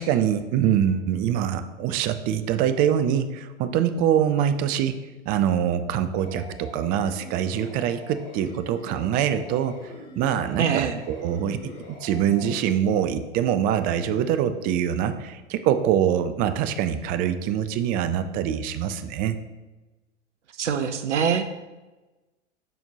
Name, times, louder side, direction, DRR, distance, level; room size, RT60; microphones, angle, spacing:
voice 1, 0.0-5.0 5.3-9.8 10.2-11.6 11.9-19.4, right 9 dB, 25° right, 11 dB, 0.4 m, -24 dB
sound 1, 6.2-12.5, left 2 dB, 35° left, 2.4 m, -43 dB
voice 2, 10.6-11.0 20.6-21.5, right 7 dB, 75° right, 9 dB, 0.7 m, -24 dB
12.0 x 4.3 x 2.9 m, 1.1 s
figure-of-eight pair, 95°, 36 cm